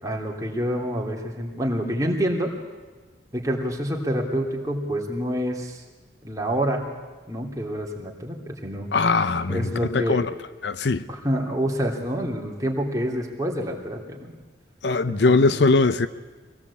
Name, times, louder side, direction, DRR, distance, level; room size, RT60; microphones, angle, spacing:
voice 1, 0.0-2.5 3.3-5.8 6.2-6.8 7.3-8.9 9.5-10.2 11.1-14.3 15.1-15.6, equal, 20° right, 3.0 m, -27 dB
voice 2, 8.9-10.3 10.6-11.1 14.8-16.1, left 3 dB, 65° left, 0.7 m, -21 dB
24.0 x 18.0 x 8.5 m
head